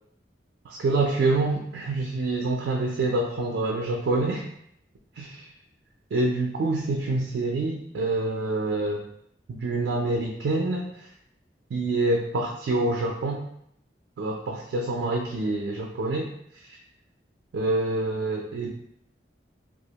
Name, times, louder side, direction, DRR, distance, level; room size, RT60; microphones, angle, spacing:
voice 1, 0.6-4.4 5.2-5.4 6.1-9.0 9.5-10.8 11.7-13.4 14.2-16.3 17.5-18.7, right 2 dB, 85° right, 0 dB, 0.3 m, -26 dB
2.3 x 2.0 x 2.8 m, 0.71 s
head